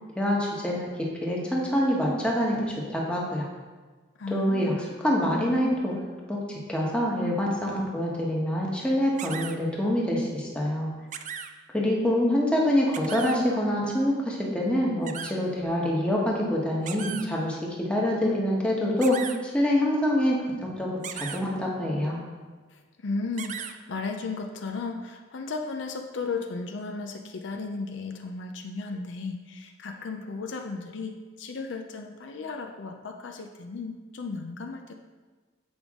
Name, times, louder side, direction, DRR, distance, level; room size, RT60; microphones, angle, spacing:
voice 1, 0.1-0.9 1.2-3.5 4.3-4.7 5.0-5.9 6.3-10.9 11.7-19.3 19.5-20.4 20.8-20.9 21.1-22.2, left 1 dB, 5° left, -4 dB, 1.1 m, -25 dB
voice 2, 4.2-4.9 22.7-34.9, left 4 dB, 65° left, 4 dB, 0.5 m, -35 dB
sound 1, 9.2-9.6 11.1-11.5 12.9-13.4 15.1-15.3 16.9-17.3 19.0-19.4 21.0-21.4 23.4-23.7, right 8 dB, 40° right, 0.3 m, -36 dB
7.9 x 5.2 x 3.6 m, 1.4 s
head